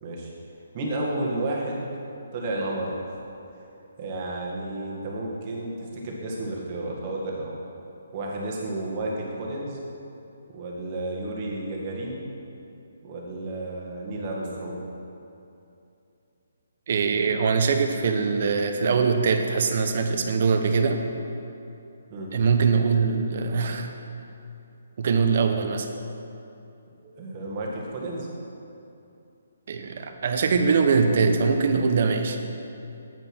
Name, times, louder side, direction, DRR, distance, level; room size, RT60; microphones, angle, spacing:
voice 1, 0.0-0.3 0.7-1.9 2.3-2.9 4.0-7.5 8.1-9.8 10.5-12.2 13.0-14.8 22.1-22.3 27.0-28.3, right 2 dB, 30° right, -3 dB, 1.7 m, -31 dB
voice 2, 16.9-21.0 22.3-23.9 25.0-25.9 29.7-32.4, right 5 dB, 50° right, 6 dB, 0.8 m, -22 dB
9.1 x 5.4 x 6.1 m, 2.8 s
hypercardioid pair, 155°, 0 cm